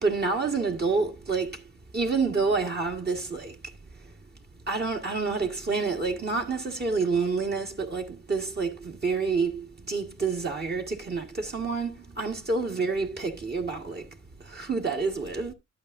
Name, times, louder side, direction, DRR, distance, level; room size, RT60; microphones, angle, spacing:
voice 1, 0.0-1.6 1.9-3.5 4.7-14.0 14.5-15.5, right 4 dB, 35° right, 1.6 m, -28 dB
12.0 x 8.6 x 2.6 m
cardioid pair, 90°, 30 cm